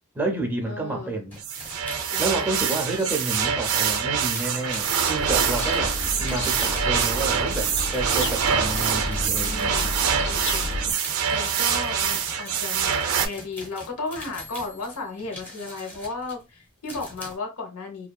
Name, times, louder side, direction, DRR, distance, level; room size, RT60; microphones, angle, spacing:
voice 1, 0.1-1.4 2.2-10.0, right 2 dB, 10° right, 0.5 m, -30 dB
voice 2, 0.7-1.1 2.1-2.6 9.4-9.9 10.3-10.8 11.3-12.9 13.2-18.1, left 3 dB, 85° left, 0.9 m, -35 dB
sound 1, 1.3-3.7 4.3-17.4, left 1 dB, 10° left, 0.8 m, -42 dB
sound 2, 1.4-13.3, right 7 dB, 80° right, 0.5 m, -25 dB
sound 3, 5.2-10.9, left 2 dB, 50° left, 0.3 m, -32 dB
2.7 x 2.3 x 2.2 m
head